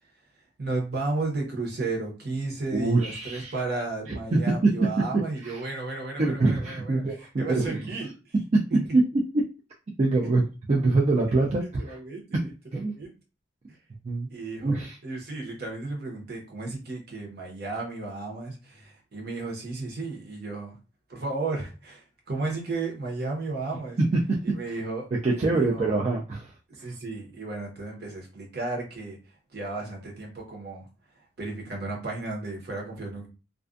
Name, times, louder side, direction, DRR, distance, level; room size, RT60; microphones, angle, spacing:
voice 1, 0.6-7.0 7.4-8.3 8.7-8.8 10.2-10.3 11.6-12.4 12.7-13.1 13.7-13.8 14.3-14.8 15.0-20.8 21.1-24.0 24.4-25.1 25.4-25.9 26.7-29.2 29.5-30.9 31.4-33.3, right 3 dB, 55° right, 0 dB, 0.9 m, -34 dB
voice 2, 2.7-3.5 4.1-4.7 5.1-5.6 6.2-7.9 8.5-8.6 8.9-9.4 10.0-12.0 12.3-12.9 14.0-14.3 14.6-15.0 24.0-24.4 24.7-24.8 25.2-26.6, right 2 dB, 35° right, -2 dB, 0.4 m, -25 dB
2.4 x 2.2 x 2.4 m, 0.31 s
head